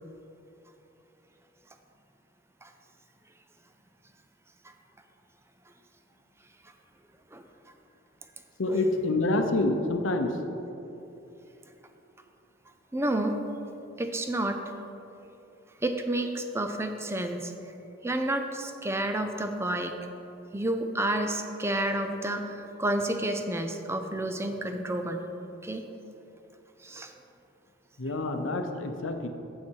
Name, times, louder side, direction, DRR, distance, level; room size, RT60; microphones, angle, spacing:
voice 1, 8.6-10.3 28.0-29.3, left 2 dB, 80° left, 6 dB, 0.7 m, -27 dB
voice 2, 12.9-13.4 14.0-14.6 15.8-17.7 18.0-19.9 20.5-25.2 25.6-25.8 26.8-27.1, right 1 dB, 15° right, 6 dB, 0.5 m, -30 dB
8.7 x 7.5 x 4.6 m, 2.9 s
head